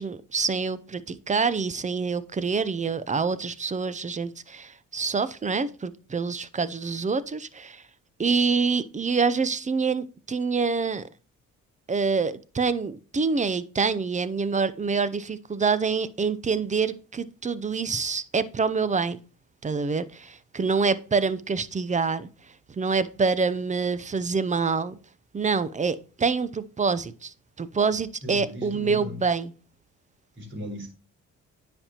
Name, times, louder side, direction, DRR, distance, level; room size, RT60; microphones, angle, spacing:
voice 1, 0.0-7.8 8.2-11.1 11.9-19.2 19.6-22.3 22.7-25.0 25.3-29.5, right 5 dB, 25° right, 16 dB, 0.6 m, -26 dB
voice 2, 28.2-29.2 30.4-30.9, left 2 dB, 40° right, 3 dB, 3.6 m, -37 dB
9.6 x 5.2 x 2.9 m, 0.35 s
cardioid pair, 90°, 30 cm